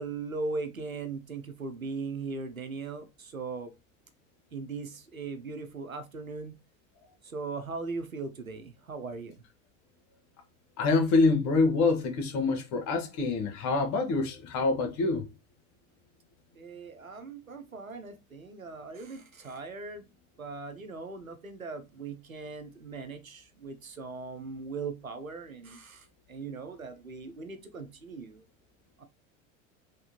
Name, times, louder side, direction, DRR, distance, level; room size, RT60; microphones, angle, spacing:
voice 1, 0.0-3.7 4.5-6.5 7.3-9.3 16.6-20.0 20.4-26.0 26.3-28.4, right 4 dB, 90° right, 0.6 m, -39 dB
voice 2, 10.8-15.3, left 3 dB, 45° left, 1.3 m, -26 dB
3.4 x 3.2 x 2.8 m
figure-of-eight pair, 70°, 40 cm